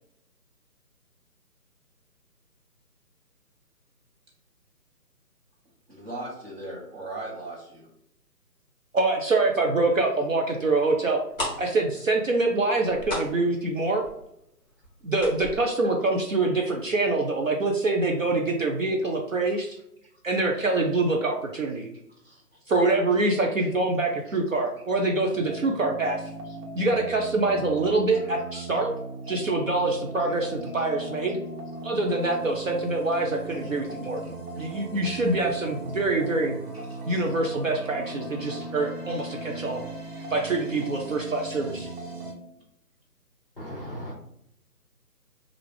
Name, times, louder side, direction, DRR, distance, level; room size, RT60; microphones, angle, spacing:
voice 1, 5.9-7.9 22.2-22.4 24.3-24.4 28.1-28.3 28.5-28.6 30.2-30.3 33.5-33.6 36.7-37.0 37.8-37.9 39.3-39.4 40.2-40.3, right 2 dB, 40° right, 1.2 m, -39 dB
voice 2, 8.9-11.2 11.6-14.0 15.0-19.8 20.2-21.9 22.7-26.2 26.8-28.9 29.3-31.4 31.8-34.2 34.6-36.6 37.1-39.8 40.3-41.9, right 2 dB, 55° right, 0.5 m, -25 dB
sound 1, 11.3-16.9 17.1-17.2 17.7-17.9 18.2-18.3, left 1 dB, 5° left, 1.2 m, -36 dB
sound 2, 25.3-42.3, right 2 dB, 70° right, 1.2 m, -38 dB
voice 3, 43.6-44.1, equal, 40° left, 0.4 m, -36 dB
3.2 x 2.4 x 3.2 m
figure-of-eight pair, 160°, 48 cm